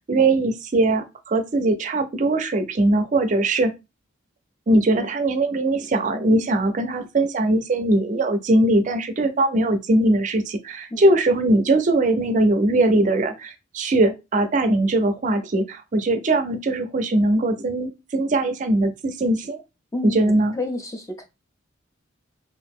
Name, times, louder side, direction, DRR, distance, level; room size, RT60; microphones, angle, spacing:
voice 1, 0.1-3.7 4.7-19.6 20.0-20.5, right 2 dB, 40° right, 8 dB, 0.4 m, -20 dB
voice 2, 19.9-21.2, left 2 dB, 15° left, 4 dB, 0.5 m, -30 dB
2.8 x 2.4 x 3.6 m, 0.25 s
head